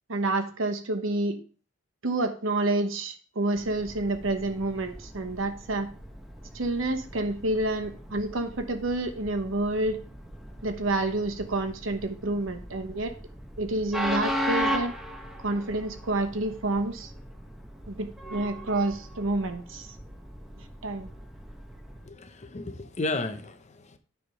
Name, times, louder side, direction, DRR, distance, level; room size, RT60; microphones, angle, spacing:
voice 1, 0.1-1.4 2.0-5.9 6.5-10.0 10.6-13.1 13.6-14.9 15.4-17.1 17.9-19.9 20.8-21.1, right 2 dB, 80° right, 6 dB, 1.0 m, -28 dB
Train, 3.5-22.1, equal, ahead, 0.8 m, -37 dB
voice 2, 22.0-24.0, left 2 dB, 35° left, 9 dB, 0.7 m, -33 dB
9.4 x 3.5 x 5.3 m, 0.40 s
head